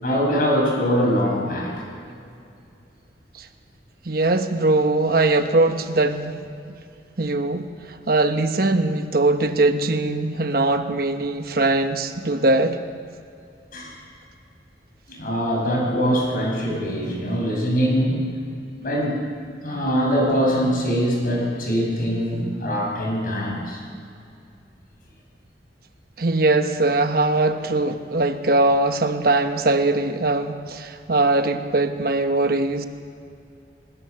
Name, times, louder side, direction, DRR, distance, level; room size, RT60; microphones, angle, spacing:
voice 1, 0.0-1.8 13.7-13.9 15.1-18.2 18.8-19.2 19.6-23.8, equal, 50° left, 0 dB, 5.8 m, -22 dB
voice 2, 4.0-6.5 7.2-12.8 26.2-32.9, right 2 dB, 55° right, 7 dB, 1.1 m, -21 dB
21.5 x 18.5 x 6.9 m, 2.5 s
head